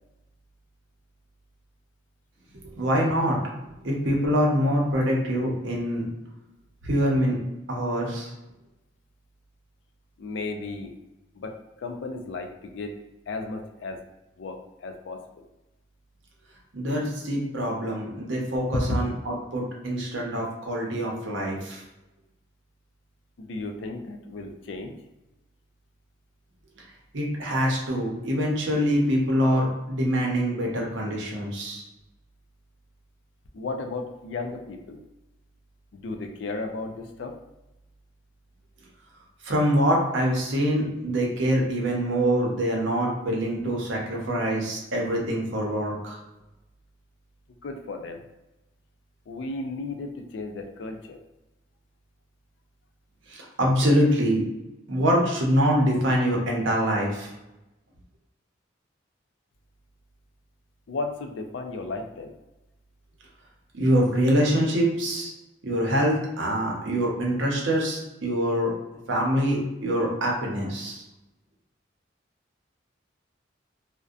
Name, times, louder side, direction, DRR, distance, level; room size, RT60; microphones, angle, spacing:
voice 1, 2.8-3.4 3.8-6.1 6.8-7.4 7.7-8.3 16.7-21.8 27.1-31.8 39.4-46.2 53.3-54.4 54.9-57.3 63.7-65.3 65.6-68.7 69.1-71.0, equal, 80° right, -2 dB, 0.7 m, -24 dB
voice 2, 10.2-11.0 11.3-13.0 13.3-14.0 14.4-15.5 18.7-19.0 23.4-25.0 33.5-35.0 35.9-37.3 47.6-48.2 49.3-51.2 60.9-62.3, left 3 dB, 75° left, 4 dB, 0.4 m, -34 dB
2.6 x 2.1 x 2.4 m, 0.97 s
head